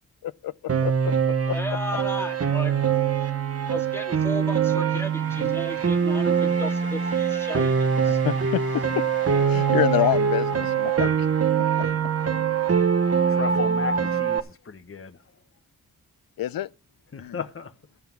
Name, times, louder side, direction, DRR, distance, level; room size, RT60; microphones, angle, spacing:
voice 1, 0.2-0.5 0.8-0.9 1.5-1.6 8.1-9.0 9.5-11.3 16.4-16.7 17.2-17.4, left 12 dB, 70° left, 0.5 m, -27 dB
Piano, 0.7-14.4, right 7 dB, 40° right, 1.0 m, -23 dB
voice 2, 1.5-3.1 3.7-8.2, equal, 5° left, 1.8 m, -34 dB
sound 1, 4.0-11.8, right 4 dB, 75° right, 1.8 m, -44 dB
voice 3, 13.3-15.2 17.1-17.7, left 6 dB, 35° left, 1.1 m, -34 dB
12.5 x 5.7 x 7.3 m
cardioid pair, 70°, 36 cm